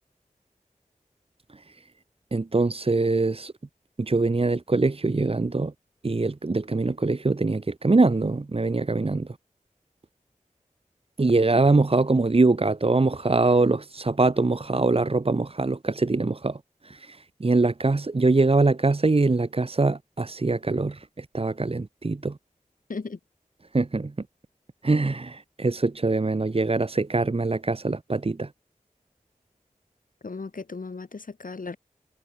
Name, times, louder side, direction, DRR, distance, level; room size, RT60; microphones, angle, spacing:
voice 1, 2.3-3.5 4.0-5.7 6.0-9.3 11.2-16.6 16.8-22.3 23.7-24.1 24.8-28.5, right 3 dB, 45° right, 1.1 m, -23 dB
voice 2, 30.2-31.8, left 4 dB, 85° left, 2.7 m, -36 dB
wide cardioid pair, 55°, 14 cm